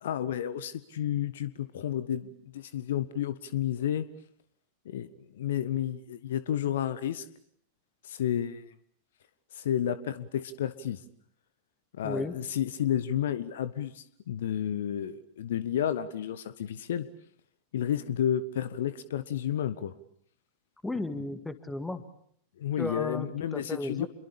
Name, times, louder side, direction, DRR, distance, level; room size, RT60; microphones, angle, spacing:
voice 1, 0.0-4.1 4.8-7.2 8.0-8.6 9.5-11.0 11.9-17.1 17.7-19.9 21.1-21.2 22.6-24.1, left 10 dB, 60° left, 15 dB, 1.2 m, -31 dB
voice 2, 12.0-12.3 20.8-22.0 22.8-24.1, left 2 dB, 5° left, 12 dB, 2.0 m, -34 dB
28.0 x 23.0 x 8.7 m, 0.66 s
figure-of-eight pair, 90°, 0 cm